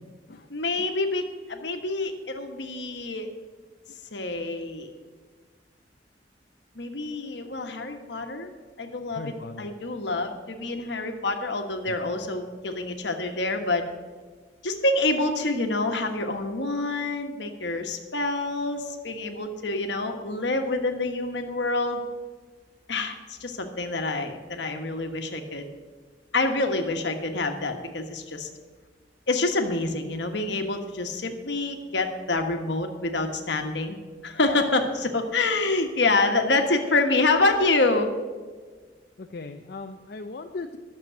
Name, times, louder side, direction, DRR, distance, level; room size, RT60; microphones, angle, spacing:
voice 1, 0.5-3.3 4.1-4.9 6.7-8.5 8.8-13.8 14.6-22.0 22.9-25.6 26.3-28.5 29.3-34.0 34.2-38.1, left 2 dB, 80° left, 5 dB, 1.5 m, -27 dB
voice 2, 9.2-9.7 11.9-12.0 39.2-40.8, left 3 dB, 60° left, 5 dB, 0.6 m, -38 dB
12.0 x 7.1 x 7.9 m, 1.4 s
head